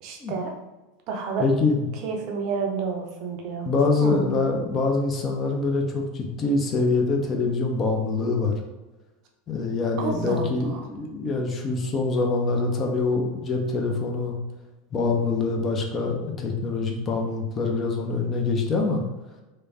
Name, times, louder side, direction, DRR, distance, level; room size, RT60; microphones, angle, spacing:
voice 1, 0.0-0.5 1.1-1.5 2.0-3.7 4.0-4.2 10.0-10.8, right 5 dB, 50° right, 2 dB, 0.5 m, -30 dB
voice 2, 1.4-1.9 3.6-8.5 9.5-14.4 14.9-19.0, left 3 dB, 30° left, 2 dB, 0.5 m, -24 dB
3.1 x 2.1 x 2.7 m, 1.1 s
figure-of-eight pair, 85°, 0 cm